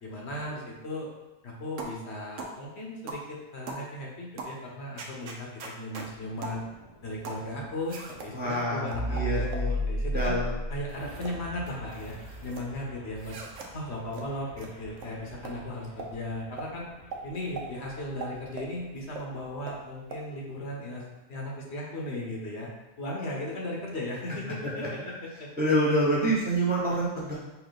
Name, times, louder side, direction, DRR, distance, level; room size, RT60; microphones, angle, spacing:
voice 1, 0.0-1.1 1.4-6.6 7.0-10.3 10.7-13.3 13.7-16.9 17.2-21.0 21.3-22.7 23.0-24.8 25.4-25.5, left 1 dB, 60° left, -2 dB, 1.1 m, -36 dB
sound 1, 1.8-2.0 2.4-2.6 3.1-3.3 3.7-3.9 4.4-4.6 5.0-6.1 6.4-6.6 7.2-7.5 7.9-8.3 8.9-9.7 10.2-10.4 10.9-11.4 11.7-12.6 13.2-13.7 14.1-14.3 14.6-14.7 15.0-15.1 15.4-15.6 16.0-16.1 16.6-16.7 17.1-17.2 17.6-17.7 18.2-18.7 19.2-19.3 19.7-19.8 20.1-20.2, right 3 dB, 75° right, 1.0 m, -40 dB
sound 2, 6.1-18.7, equal, 40° left, 0.8 m, -37 dB
voice 2, 8.3-9.7 10.1-10.5 25.6-27.4, right 1 dB, 10° right, -5 dB, 0.8 m, -26 dB
4.6 x 2.8 x 3.9 m, 1.0 s
omnidirectional pair, 1.3 m